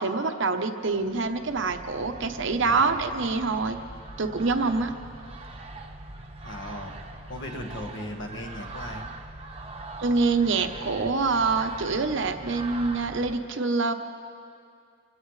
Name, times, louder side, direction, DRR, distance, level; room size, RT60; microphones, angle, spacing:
voice 1, 0.0-3.8 4.2-4.9 10.0-13.9, right 4 dB, 65° right, 7 dB, 0.9 m, -25 dB
sound 1, 0.9-13.3, right 2 dB, 30° right, 0.9 m, -42 dB
voice 2, 6.4-6.9 7.3-9.1, left 1 dB, 60° left, 2 dB, 1.6 m, -37 dB
26.0 x 16.5 x 3.3 m, 2.4 s
head